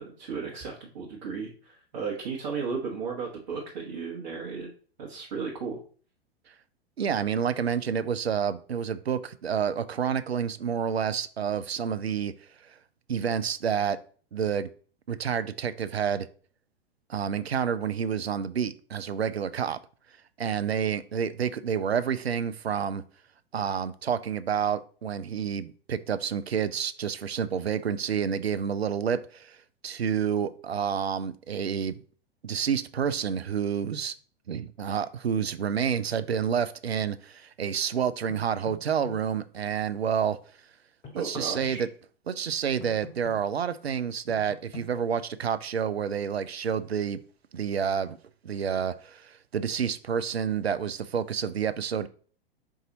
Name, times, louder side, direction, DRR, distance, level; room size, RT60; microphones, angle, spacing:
voice 1, 0.0-4.7 5.0-5.8 41.1-41.8, right 5 dB, 50° right, 1.2 m, -35 dB
voice 2, 7.0-12.3 12.6-12.7 13.1-14.0 14.3-14.7 15.1-16.3 17.1-19.8 20.4-23.0 23.5-29.6 29.8-32.0 32.4-34.1 34.5-40.4 41.2-41.9 42.3-47.2 47.5-48.2 48.4-52.1, right 7 dB, 80° right, 0.5 m, -29 dB
sound 1, 38.3-39.2 41.0-41.7 42.8-43.4 44.3-44.9, left 5 dB, 20° left, 1.0 m, -43 dB
4.8 x 2.6 x 3.9 m
figure-of-eight pair, 100°, 31 cm